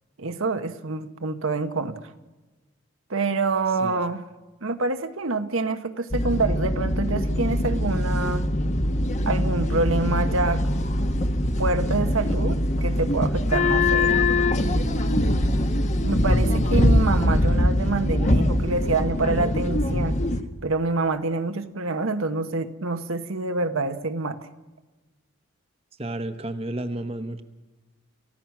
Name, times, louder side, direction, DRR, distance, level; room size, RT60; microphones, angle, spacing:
voice 1, 0.2-2.1 3.1-4.2 4.6-8.5 9.3-10.7 11.6-14.2 16.0-20.2 20.6-24.4, right 3 dB, 80° right, 8 dB, 1.2 m, -26 dB
sound 1, 6.1-20.4, left 1 dB, 35° left, 1.1 m, -22 dB
voice 2, 26.0-27.4, right 1 dB, 30° right, 9 dB, 1.0 m, -31 dB
29.0 x 15.5 x 6.0 m, 1.2 s
head